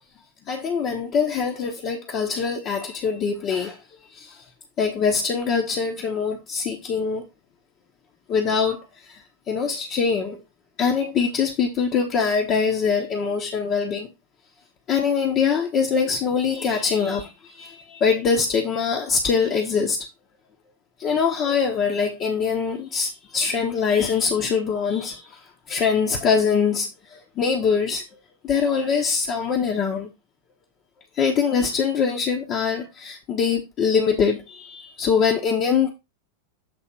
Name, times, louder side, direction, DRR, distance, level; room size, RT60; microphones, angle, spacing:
voice 1, 0.5-3.8 4.1-4.4 4.8-7.2 8.3-10.4 10.8-14.1 14.9-20.0 21.0-25.4 25.7-28.0 28.4-30.1 31.2-35.9, left 6 dB, 35° left, 1.1 m, -23 dB
7.9 x 3.4 x 4.4 m
figure-of-eight pair, 90°, 0 cm